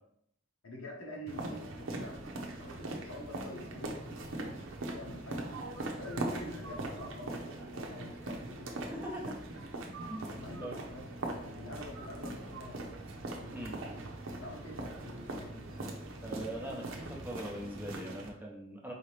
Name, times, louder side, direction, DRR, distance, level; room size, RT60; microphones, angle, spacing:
voice 1, 0.6-5.5 5.9-9.0 10.2-11.1 11.4-13.0 13.2-13.5 14.4-15.7, left 1 dB, 85° left, -2 dB, 1.2 m, -47 dB
sound 1, 1.3-18.3, right 2 dB, 80° right, 0.7 m, -41 dB
voice 2, 8.9-9.4 9.9-10.2 10.6-10.8 13.5-13.8 16.2-18.9, right 1 dB, 10° right, -1 dB, 0.7 m, -42 dB
4.7 x 2.9 x 3.3 m, 0.72 s
head